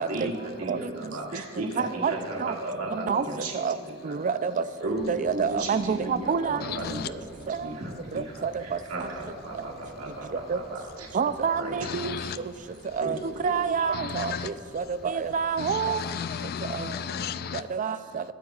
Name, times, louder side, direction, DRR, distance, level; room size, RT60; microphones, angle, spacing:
voice 1, 0.0-4.4 4.8-7.2 7.5-11.3 11.6-12.0 12.3-12.4 13.0-13.8 14.2-14.5, right 1 dB, 90° right, -2 dB, 2.0 m, -36 dB
voice 2, 1.8-2.1 2.4-2.5 3.1-3.2 3.6-3.7 4.0-4.6 5.1-6.6 7.5-7.6 10.5-10.6 11.1-12.2 13.0-13.2 13.4-14.8 15.1-16.0 17.7-18.2, right 6 dB, 40° right, 13 dB, 0.4 m, -27 dB
sound 1, 4.8-15.8, equal, ahead, 1.3 m, -52 dB
voice 3, 6.6-7.1 11.8-12.4 13.9-14.5 15.6-17.6, left 7 dB, 45° left, 13 dB, 0.3 m, -33 dB
21.5 x 8.5 x 2.4 m, 2.1 s
head